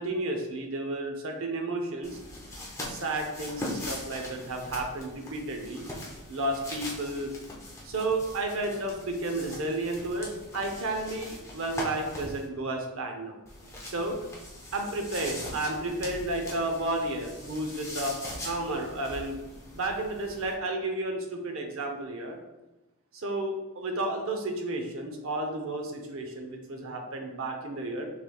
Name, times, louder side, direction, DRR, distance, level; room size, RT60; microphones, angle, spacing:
voice 1, 0.0-2.2 2.8-5.9 6.3-7.3 7.8-13.4 13.8-14.2 14.7-18.2 18.4-19.4 19.7-22.4 23.1-28.1, right 2 dB, 65° right, 3 dB, 0.7 m, -32 dB
sound 1, 2.0-12.5 13.4-20.5, left 1 dB, 15° left, 0.8 m, -41 dB
6.3 x 3.3 x 2.3 m, 1.0 s
head